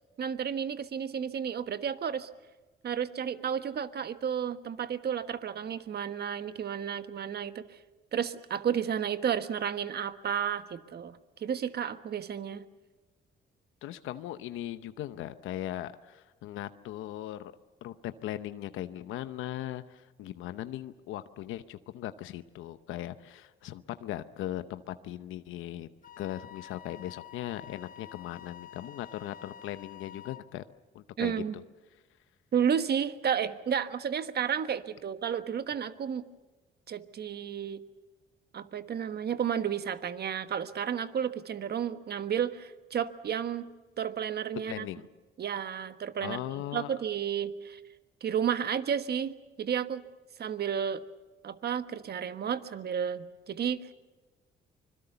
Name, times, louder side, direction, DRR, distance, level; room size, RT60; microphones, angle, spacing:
voice 1, 0.2-2.3 2.8-7.8 8.1-12.6 31.2-31.6 32.5-36.2 36.9-37.8 38.5-43.6 44.0-44.9 45.4-47.8 48.2-50.0 50.4-51.0 51.4-53.9, right 8 dB, 55° right, 11 dB, 1.3 m, -32 dB
voice 2, 13.8-17.5 17.8-25.9 26.2-30.6 30.9-31.3 44.7-45.0 46.2-46.9, left 13 dB, 90° left, 11 dB, 0.8 m, -39 dB
Wind instrument woodwind instrument, 26.0-30.5, left 10 dB, 45° left, 1.3 m, -49 dB
25.0 x 22.0 x 6.9 m, 1.2 s
cardioid pair, 90°, 20 cm